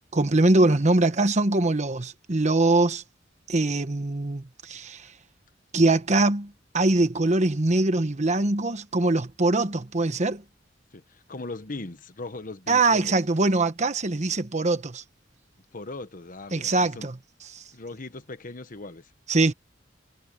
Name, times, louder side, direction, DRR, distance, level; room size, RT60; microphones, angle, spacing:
voice 1, 0.1-3.0 3.5-5.1 5.7-10.4 12.7-15.0 16.5-17.2 17.5-17.6 19.3-19.5, right 2 dB, 40° right, 1.1 m, -23 dB
voice 2, 10.9-13.1 15.7-17.1 17.7-19.1, left 2 dB, 45° left, 1.3 m, -39 dB
head